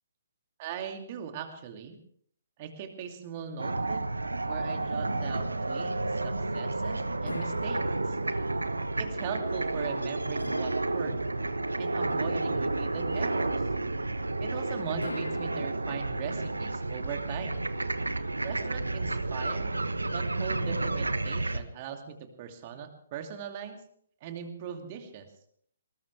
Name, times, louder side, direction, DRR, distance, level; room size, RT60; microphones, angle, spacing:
voice 1, 0.6-2.0 2.6-4.1 4.5-5.9 6.2-8.2 9.0-11.2 11.8-13.6 14.4-17.7 18.4-19.7 20.1-23.8 24.2-25.3, right 7 dB, 35° right, 5 dB, 2.5 m, -40 dB
sound 1, 3.6-21.6, right 2 dB, 80° right, 1.2 m, -31 dB
sound 2, 7.3-8.4 10.4-11.6 15.0-16.3, left 1 dB, 80° left, 1.6 m, -42 dB
20.5 x 19.5 x 3.4 m, 0.63 s
figure-of-eight pair, 130°, 0 cm